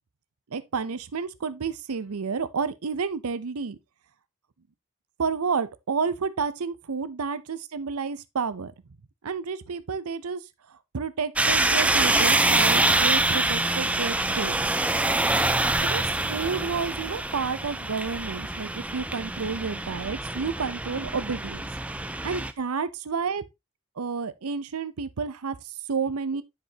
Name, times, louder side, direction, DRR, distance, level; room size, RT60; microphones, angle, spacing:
voice 1, 0.5-3.8 5.2-8.7 9.2-10.4 10.9-14.6 15.8-21.6 22.2-23.4 24.0-26.4, right 5 dB, 90° right, 0.6 m, -30 dB
sound 1, 11.4-22.5, right 2 dB, 5° right, 0.3 m, -25 dB
9.9 x 5.2 x 2.8 m
head